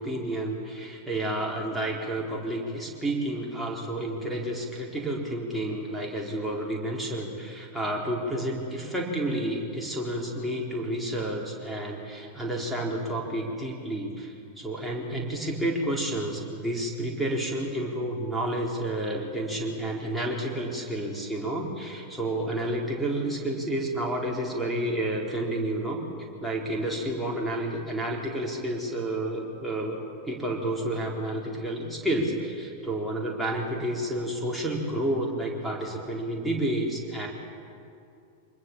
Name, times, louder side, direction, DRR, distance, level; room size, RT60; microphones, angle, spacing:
voice 1, 0.0-37.3, right 1 dB, ahead, -3 dB, 4.4 m, -30 dB
26.0 x 20.5 x 7.6 m, 2.5 s
figure-of-eight pair, 90°, 0 cm